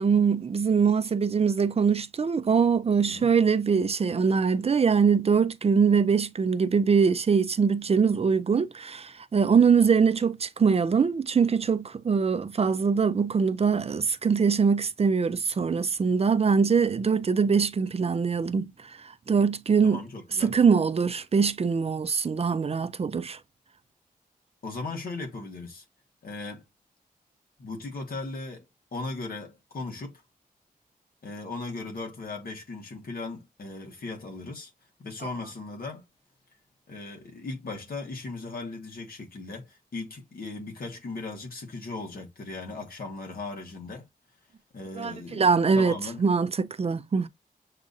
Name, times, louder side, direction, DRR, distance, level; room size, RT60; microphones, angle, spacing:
voice 1, 0.0-18.7 19.3-20.0 20.4-23.4 45.0-47.3, right 5 dB, 40° right, 0.4 m, -23 dB
voice 2, 19.8-20.5 24.6-25.8 26.2-26.6 27.6-28.6 28.9-30.2 31.2-34.7 35.0-36.0 36.9-44.0 44.7-46.2, left 3 dB, 75° left, 1.6 m, -37 dB
7.4 x 2.5 x 2.6 m
wide cardioid pair, 95°, 15 cm